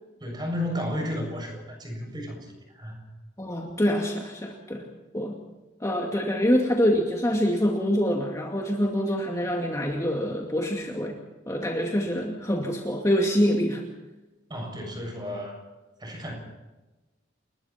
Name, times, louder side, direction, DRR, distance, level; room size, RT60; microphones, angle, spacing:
voice 1, 0.2-3.0 14.5-15.6 16.0-16.3, left 1 dB, 20° right, 2 dB, 7.3 m, -33 dB
voice 2, 3.4-4.8 5.1-5.4 5.8-11.2 11.5-13.8, equal, 15° left, 0 dB, 2.3 m, -25 dB
29.5 x 21.0 x 4.5 m, 1.1 s
head